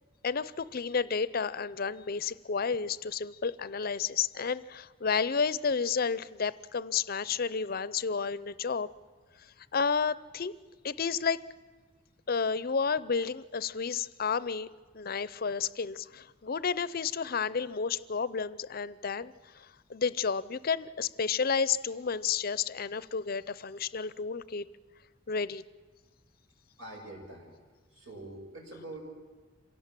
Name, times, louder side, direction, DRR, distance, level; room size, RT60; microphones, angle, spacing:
voice 1, 0.2-8.9 9.7-10.5 10.8-11.4 12.3-14.7 14.9-24.6 25.3-25.6, left 5 dB, 50° left, 17 dB, 0.6 m, -31 dB
voice 2, 26.8-27.5 27.9-29.0, right 2 dB, 80° right, 1 dB, 6.6 m, -44 dB
26.5 x 17.5 x 7.4 m, 1.3 s
head